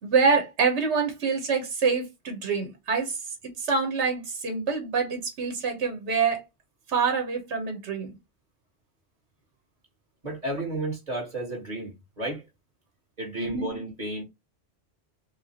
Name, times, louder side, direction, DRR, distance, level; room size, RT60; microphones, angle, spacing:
voice 1, 0.0-3.2 3.6-6.4 6.9-8.1 13.3-13.7, right 5 dB, 80° right, 1.4 m, -26 dB
voice 2, 10.2-12.5 13.2-14.2, right 2 dB, 35° right, 1.9 m, -32 dB
4.8 x 2.3 x 2.9 m
omnidirectional pair, 1.2 m